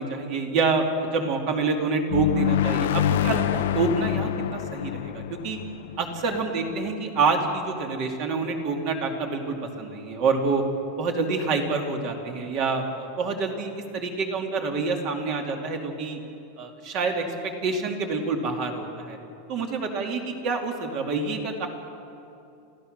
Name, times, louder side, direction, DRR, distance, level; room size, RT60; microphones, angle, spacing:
voice 1, 0.0-5.6 6.0-10.6 11.0-16.2 16.6-19.2 19.5-21.7, right 4 dB, 35° right, 3 dB, 2.5 m, -27 dB
sound 1, 2.1-6.7, left 11 dB, 80° left, 0.7 m, -26 dB
27.0 x 15.5 x 6.6 m, 2.8 s
supercardioid pair, 170°, 0 cm